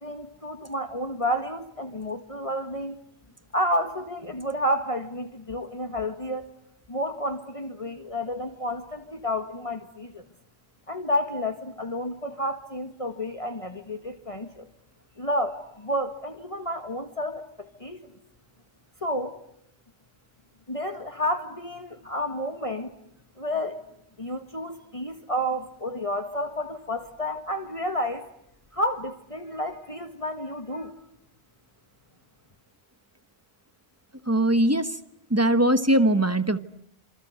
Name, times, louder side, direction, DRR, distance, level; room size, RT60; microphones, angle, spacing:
voice 1, 0.0-3.0 3.5-6.5 6.9-10.2 10.9-14.7 15.2-18.0 19.0-19.4 20.7-22.9 23.4-23.8 24.2-28.3 28.7-30.9, equal, 30° left, 6 dB, 1.8 m, -30 dB
voice 2, 34.3-35.0 35.3-36.6, right 1 dB, 15° right, 11 dB, 1.2 m, -21 dB
27.5 x 26.5 x 7.9 m, 0.78 s
omnidirectional pair, 1.1 m